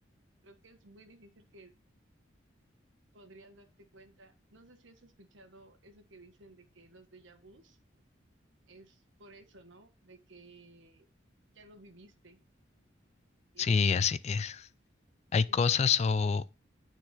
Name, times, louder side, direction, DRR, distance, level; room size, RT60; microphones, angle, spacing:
voice 1, 0.4-1.8 3.1-7.8 8.7-11.0 11.5-12.4 13.5-14.1 15.5-15.6, right 2 dB, 80° right, 1.3 m, -56 dB
voice 2, 13.6-14.7 15.3-16.5, left 6 dB, 35° left, 0.3 m, -27 dB
9.7 x 4.5 x 4.0 m
head